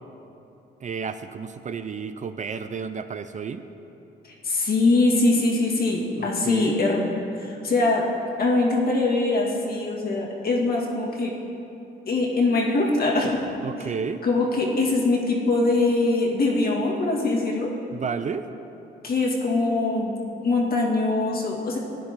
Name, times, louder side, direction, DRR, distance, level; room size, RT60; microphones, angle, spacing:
voice 1, 0.8-3.6 6.2-6.8 13.6-14.2 17.9-18.5, right 6 dB, 40° right, 10 dB, 0.5 m, -32 dB
voice 2, 4.4-7.1 7.4-8.0 8.4-11.3 12.1-13.4 13.8-13.9 14.2-17.7 19.0-20.1 20.4-21.8, left 2 dB, 50° left, -2 dB, 2.1 m, -22 dB
15.5 x 9.6 x 3.7 m, 2.9 s
cardioid pair, 90°, 20 cm